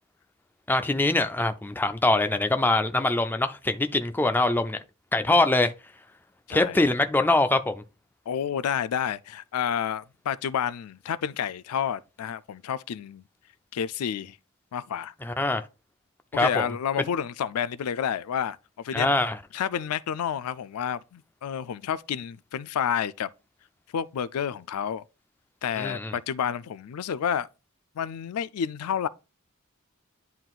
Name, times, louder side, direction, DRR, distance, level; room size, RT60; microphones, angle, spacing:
voice 1, 0.7-4.8 5.1-5.7 6.5-7.7 15.2-15.6 16.3-16.7 18.9-19.4 25.8-26.1, left 2 dB, 10° left, 0.4 m, -23 dB
voice 2, 6.5-6.8 8.3-13.2 13.7-14.4 14.7-15.1 16.3-18.6 18.8-19.1 19.5-23.3 23.9-25.0 25.6-27.5 28.0-29.1, left 8 dB, 90° left, 0.4 m, -30 dB
10.5 x 3.9 x 2.4 m
head